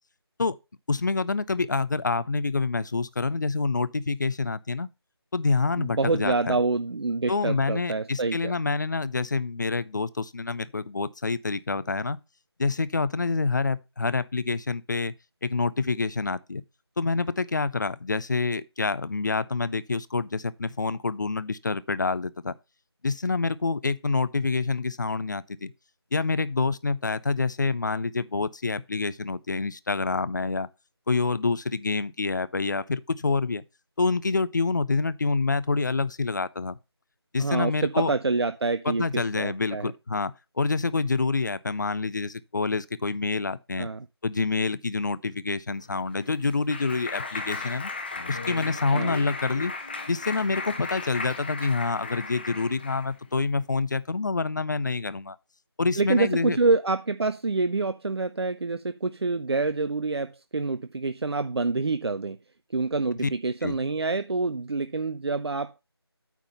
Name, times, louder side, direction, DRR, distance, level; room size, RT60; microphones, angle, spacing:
voice 1, 0.9-4.9 5.3-6.6 7.3-12.2 12.6-15.2 15.4-16.6 17.0-22.5 23.0-25.7 26.1-30.7 31.1-33.6 34.0-36.8 37.3-38.1 38.8-43.9 44.2-47.9 48.3-49.7 50.1-55.4 55.8-56.6 63.2-63.3 63.6-63.8, left 4 dB, 45° left, 0.5 m, -27 dB
voice 2, 5.8-8.5 37.4-39.9 43.8-44.1 48.9-49.2 56.0-62.4 62.7-65.8, right 3 dB, 70° right, 0.6 m, -27 dB
Clapping, 45.9-53.1, left 3 dB, 25° left, 0.9 m, -36 dB
9.1 x 3.7 x 6.9 m
figure-of-eight pair, 165°, 14 cm